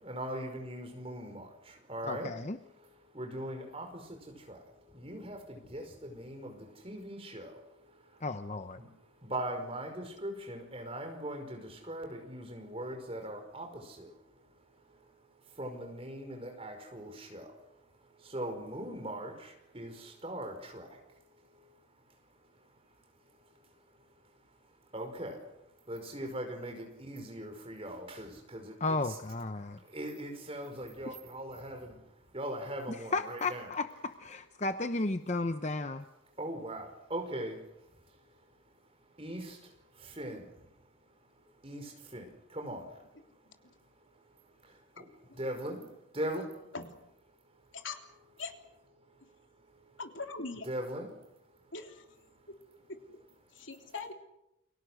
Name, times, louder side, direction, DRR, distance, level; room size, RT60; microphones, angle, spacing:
voice 1, 0.0-1.5 1.9-2.3 3.1-3.9 4.5-4.6 4.9-7.5 8.8-8.9 9.2-14.1 15.6-17.5 18.3-20.9 24.9-25.4 25.9-29.2 29.9-32.0 32.3-33.7 36.4-37.6 39.2-39.6 40.2-40.4 41.6-42.3 42.5-42.9 45.0-45.1 45.4-45.8 46.1-46.5 50.6-51.1, right 1 dB, 30° right, 4 dB, 5.2 m, -40 dB
voice 2, 2.0-2.6 8.2-8.8 28.8-29.8 33.1-36.0, left 3 dB, 35° left, 8 dB, 0.8 m, -34 dB
voice 3, 50.0-50.7 51.7-52.0 52.9-53.2 53.5-54.1, left 3 dB, 70° left, 4 dB, 3.3 m, -41 dB
29.5 x 23.5 x 6.5 m, 0.85 s
head